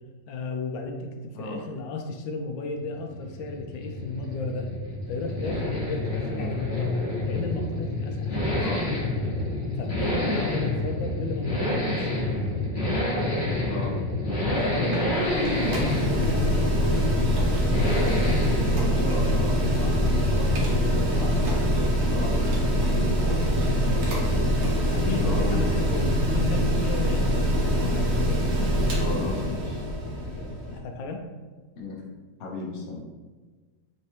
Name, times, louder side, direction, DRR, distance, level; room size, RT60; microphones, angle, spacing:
voice 1, 0.3-4.7 5.1-7.0 7.2-8.8 9.8-12.3 14.5-17.3 24.9-28.1 30.3-31.2, left 3 dB, 90° left, 3 dB, 1.3 m, -34 dB
Accelerating revving vroom, 2.8-21.0 21.2-21.3, left 2 dB, 30° left, 1.1 m, -28 dB
voice 2, 10.3-10.7 13.7-14.0 15.6-15.9 18.4-24.2 25.2-25.7 29.0-29.8 31.8-32.0 32.4-33.0, left 2 dB, 50° left, -2 dB, 0.9 m, -36 dB
sound 1, 14.4-16.3 16.6-17.0 17.4-19.5 19.8-20.0 20.4-21.0 21.4-23.0 23.4-24.3 24.6-24.8 25.3-25.4, right 2 dB, 80° right, 1.5 m, -41 dB
Mechanical fan, 14.5-30.8, equal, 55° right, 0.8 m, -24 dB
4.4 x 3.1 x 2.9 m, 1.3 s
omnidirectional pair, 2.0 m